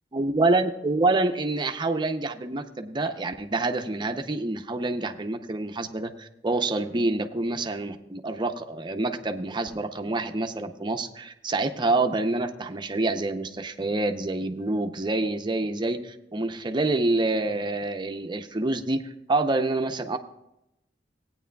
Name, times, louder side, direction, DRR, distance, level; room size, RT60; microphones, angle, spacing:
voice 1, 0.1-20.2, right 2 dB, 25° right, 6 dB, 0.6 m, -27 dB
16.5 x 9.3 x 2.3 m, 0.87 s
head